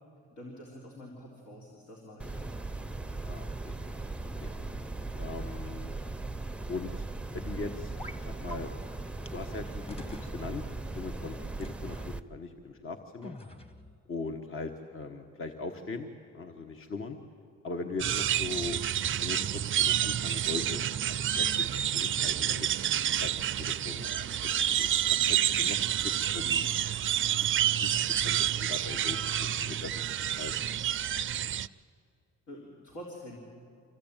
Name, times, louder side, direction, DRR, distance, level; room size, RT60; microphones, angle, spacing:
voice 1, 0.3-2.5 4.5-4.8 11.4-11.6 25.9-26.0 32.5-33.4, equal, 75° left, -2 dB, 3.5 m, -47 dB
sound 1, 2.2-12.2, right 2 dB, 5° right, 0.6 m, -38 dB
voice 2, 3.2-3.8 4.4-4.5 5.2-5.9 6.7-7.0 7.3-8.7 9.3-10.6 10.9-13.4 14.1-16.1 16.3-17.2 17.6-18.8 19.2-22.7 23.2-25.8 26.0-26.7 27.8-29.2 29.6-30.5, left 3 dB, 45° left, 5 dB, 1.4 m, -40 dB
sound 2, 8.0-8.2 8.5-8.6 9.2-9.3 9.9-10.4 11.6-12.1 13.2-13.9, left 1 dB, 20° left, 1.8 m, -46 dB
sound 3, 18.0-31.7, right 10 dB, 40° right, 0.5 m, -29 dB
25.0 x 15.5 x 8.9 m, 2.4 s
cardioid pair, 90°, 30 cm